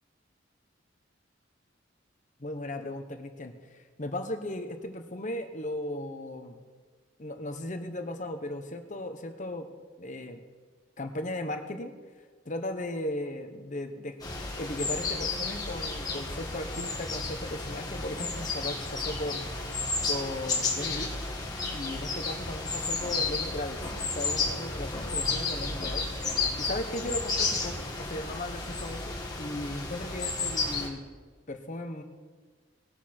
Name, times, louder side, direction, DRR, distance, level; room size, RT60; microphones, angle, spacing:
voice 1, 2.4-3.5 4.0-6.6 7.2-9.7 10.0-10.4 11.0-11.9 12.4-14.2 14.6-19.5 20.1-21.1 21.7-23.8 24.1-26.1 26.6-31.0 31.5-32.0, left 1 dB, 40° left, 7 dB, 1.0 m, -36 dB
sound 1, 14.2-30.9, left 3 dB, 20° left, 1.9 m, -32 dB
19.5 x 7.1 x 4.4 m, 1.5 s
head